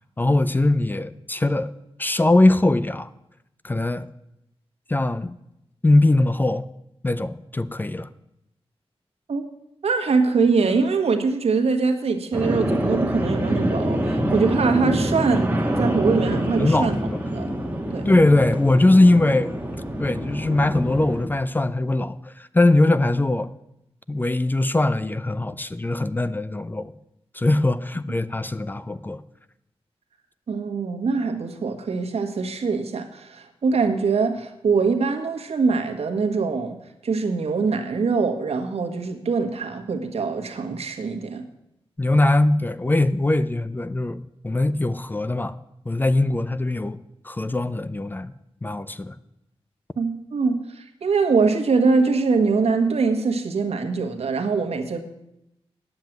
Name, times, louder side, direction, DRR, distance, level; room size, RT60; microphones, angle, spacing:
voice 1, 0.2-1.7 2.0-3.1 3.6-4.1 4.9-5.3 5.8-6.7 7.0-8.1 16.6-17.2 18.1-19.5 20.0-23.5 24.1-26.9 27.3-29.2 42.0-45.6 45.9-47.0 47.2-48.3 48.6-49.2, left 2 dB, 20° left, 0.5 m, -21 dB
voice 2, 9.8-16.9 17.3-17.5 17.9-18.1 30.5-36.8 37.0-41.4 50.0-55.0, right 4 dB, 80° right, 1.4 m, -23 dB
sound 1, 12.3-21.2, right 1 dB, 15° right, 1.8 m, -26 dB
9.4 x 7.4 x 9.2 m
wide cardioid pair, 130°, 10 cm